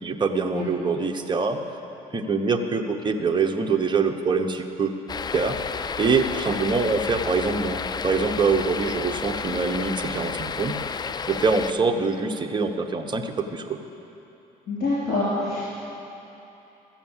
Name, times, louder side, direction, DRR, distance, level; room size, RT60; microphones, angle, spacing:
voice 1, 0.0-1.6 2.1-4.9 5.3-5.6 6.0-10.8 11.3-13.8, right 4 dB, 25° right, 5 dB, 0.9 m, -24 dB
sound 1, 5.1-11.7, left 6 dB, 25° left, 0.3 m, -31 dB
voice 2, 14.7-15.7, left 2 dB, 60° left, -8 dB, 3.4 m, -26 dB
14.5 x 7.4 x 7.2 m, 2.9 s
cardioid pair, 110°, 17 cm